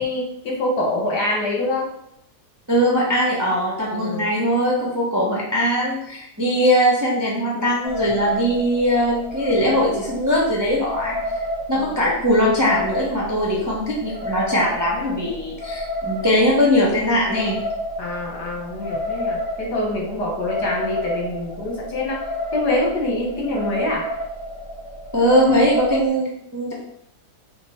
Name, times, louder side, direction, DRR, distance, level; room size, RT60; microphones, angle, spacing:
voice 1, 0.0-1.9 3.9-4.3 11.7-11.9 18.0-22.2 22.5-24.1, left 2 dB, 80° left, -1 dB, 1.6 m, -25 dB
voice 2, 2.7-11.4 11.7-17.6 25.1-26.7, equal, 25° right, -5 dB, 0.4 m, -20 dB
sound 1, 7.8-26.1, left 1 dB, 20° left, 0.6 m, -31 dB
4.4 x 2.3 x 4.3 m, 0.75 s
omnidirectional pair, 1.7 m